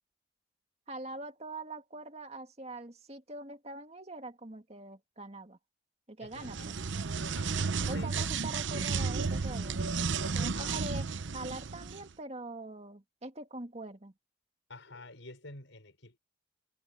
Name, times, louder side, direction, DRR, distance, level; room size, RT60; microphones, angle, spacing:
voice 1, 0.9-5.6 6.1-6.8 7.9-9.8 10.3-11.1 11.3-14.1, right 2 dB, 35° right, 2.1 m, -43 dB
voice 2, 6.2-6.6 7.4-8.5 10.5-11.0 14.7-16.2, left 2 dB, 90° left, 5.4 m, -48 dB
sound 1, 6.3-12.0, right 4 dB, 85° right, 0.8 m, -33 dB
head